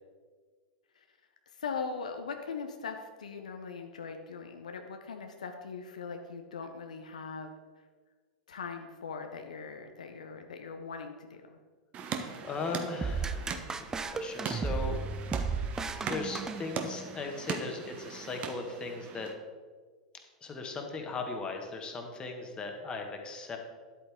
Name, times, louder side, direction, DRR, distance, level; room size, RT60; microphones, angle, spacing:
voice 1, 1.5-7.5 8.5-11.6, left 5 dB, 75° left, 5 dB, 0.7 m, -40 dB
sound 1, 11.9-19.3, right 6 dB, 35° right, 1.0 m, -40 dB
voice 2, 12.4-15.0 16.0-19.3 20.4-23.6, left 4 dB, 20° left, 3 dB, 1.5 m, -38 dB
sound 2, 13.0-17.2, right 4 dB, 15° right, 0.5 m, -34 dB
11.0 x 8.4 x 3.6 m, 1.5 s
figure-of-eight pair, 95°, 4 cm